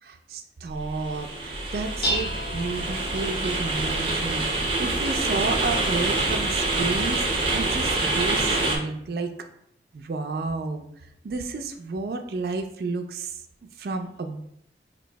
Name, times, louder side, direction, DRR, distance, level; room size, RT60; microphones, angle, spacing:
voice 1, 0.3-9.3 9.9-10.9 11.2-14.4, right 3 dB, 55° right, 5 dB, 0.4 m, -31 dB
sound 1, 0.7-8.8, right 2 dB, 30° right, 0.7 m, -26 dB
Dishes pots and pans, 1.5-8.6, equal, 65° left, 0.8 m, -35 dB
3.0 x 2.7 x 4.4 m, 0.74 s
head